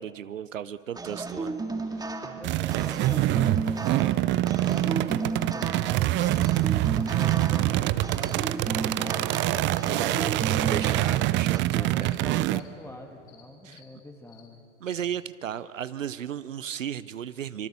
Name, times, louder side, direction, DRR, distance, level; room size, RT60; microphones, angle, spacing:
voice 1, 0.0-1.5 1.9-2.0 10.7-12.2 13.6-13.8 14.8-17.7, right 9 dB, 80° right, 15 dB, 0.7 m, -35 dB
sound 1, 0.9-11.6, right 3 dB, 10° right, 2.1 m, -34 dB
voice 2, 2.4-6.3 6.9-10.2 11.7-14.6, left 1 dB, 5° left, 3 dB, 2.1 m, -44 dB
sound 2, 2.4-12.6, right 16 dB, 30° right, 0.6 m, -25 dB
sound 3, 9.7-9.8 10.3-10.4 10.8-11.0 11.4-11.6 12.0-12.2 12.5-12.7 13.3-13.4 13.7-13.9 14.3-14.5 14.8-15.0, left 11 dB, 65° left, 5.3 m, -55 dB
25.5 x 24.5 x 6.9 m, 2.9 s
figure-of-eight pair, 90°, 38 cm